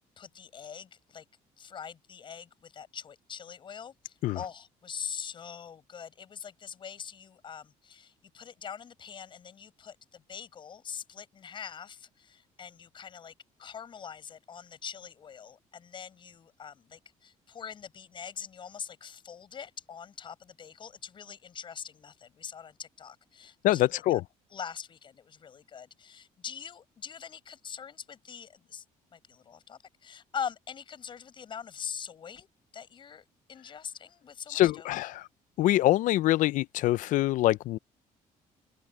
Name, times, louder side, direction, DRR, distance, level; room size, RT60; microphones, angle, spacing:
voice 1, 0.2-1.3 1.6-13.3 13.6-24.2 24.5-28.8 29.1-32.5 32.7-35.1, left 7 dB, 35° left, 7.1 m, -43 dB
voice 2, 23.6-24.2 34.5-35.2 35.6-37.8, left 15 dB, 65° left, 0.5 m, -24 dB
open air
cardioid pair, 170°, 14 cm